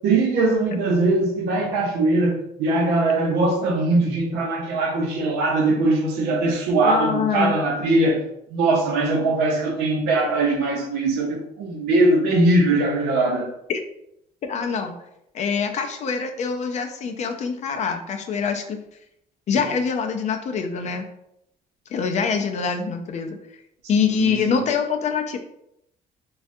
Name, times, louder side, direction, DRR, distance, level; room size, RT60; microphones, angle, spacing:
voice 1, 0.0-8.2 8.5-13.5 24.1-24.7, right 2 dB, 90° right, 0.7 m, -21 dB
voice 2, 6.8-7.5 13.7-13.8 14.4-15.0 15.3-18.8 19.5-21.0 21.9-23.4 23.9-25.4, left 6 dB, 45° left, 0.4 m, -24 dB
3.4 x 2.3 x 2.6 m
cardioid pair, 120°, 17 cm